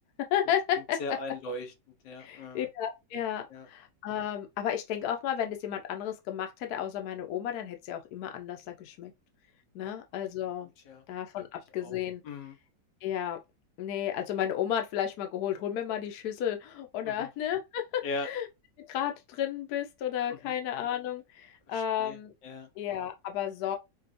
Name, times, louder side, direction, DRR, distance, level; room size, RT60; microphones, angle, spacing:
voice 1, 0.3-1.0 2.2-9.1 9.7-10.7 11.1-12.2 13.0-13.4 13.8-18.5 18.8-22.3 22.8-23.8, left 10 dB, 70° left, 1.2 m, -33 dB
voice 2, 1.0-1.7 2.0-2.7 3.5-3.7 9.8-9.9 10.9-11.0 11.8-12.0 12.2-12.5 17.0-17.3 18.0-18.3 20.3-20.5 21.7-22.2 22.4-22.7, left 2 dB, 90° left, 1.6 m, -38 dB
5.1 x 2.4 x 2.5 m
omnidirectional pair, 1.9 m